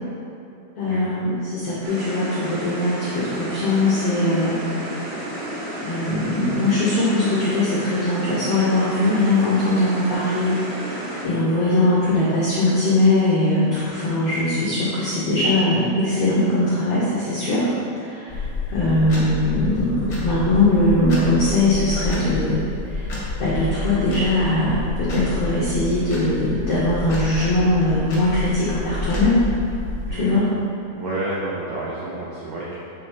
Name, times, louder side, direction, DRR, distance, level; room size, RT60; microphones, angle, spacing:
voice 1, 0.8-4.6 5.8-11.0 11.2-17.7 18.0-22.6 22.9-23.1 23.4-29.4 30.1-30.5, left 2 dB, 85° left, -8 dB, 1.4 m, -21 dB
sound 1, 1.8-11.2, equal, 65° right, 1.6 m, -31 dB
sound 2, 18.3-30.1, left 3 dB, 70° left, 0.9 m, -29 dB
voice 2, 30.1-30.4 30.9-32.8, right 2 dB, 90° right, -7 dB, 1.5 m, -29 dB
8.4 x 3.4 x 4.4 m, 2.8 s
omnidirectional pair, 4.4 m